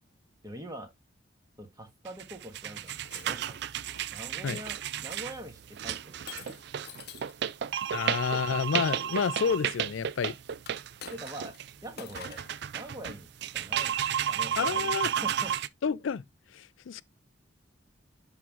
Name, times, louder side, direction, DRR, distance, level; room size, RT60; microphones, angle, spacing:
voice 1, 0.4-0.9 1.6-3.6 4.1-6.5 11.1-11.6 11.8-12.4 12.7-13.3 13.5-13.9 14.2-15.5, right 1 dB, 20° right, 1.6 m, -43 dB
sound 1, 2.1-15.7, right 9 dB, 60° right, 0.4 m, -33 dB
Shatter, 2.7-4.1 4.7-5.1 6.3-7.4 10.6-11.6 12.0-12.6, left 8 dB, 55° left, 0.8 m, -47 dB
voice 2, 7.9-10.3 14.6-15.1 15.8-16.2 16.5-17.0, left 6 dB, 85° left, 0.4 m, -29 dB
11.0 x 3.7 x 3.0 m
head